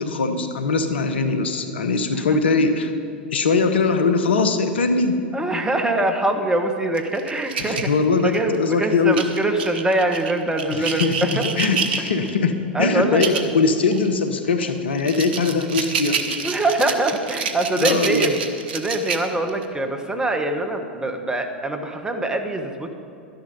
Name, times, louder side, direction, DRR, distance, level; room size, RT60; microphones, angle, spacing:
voice 1, 0.0-2.9 3.3-5.2 7.6-9.2 10.7-11.2 11.6-16.2 17.8-18.3, left 4 dB, 75° left, 8 dB, 1.0 m, -21 dB
voice 2, 5.3-7.9 8.2-11.4 12.7-13.4 16.4-18.4 18.7-22.9, right 2 dB, 10° right, 5 dB, 1.3 m, -23 dB
sound 1, 7.0-8.6 9.1-12.4 13.0-13.5 13.9-14.1 14.6-19.6, right 6 dB, 70° right, 1.1 m, -28 dB
12.5 x 11.0 x 5.4 m, 2.7 s
figure-of-eight pair, 95°, 6 cm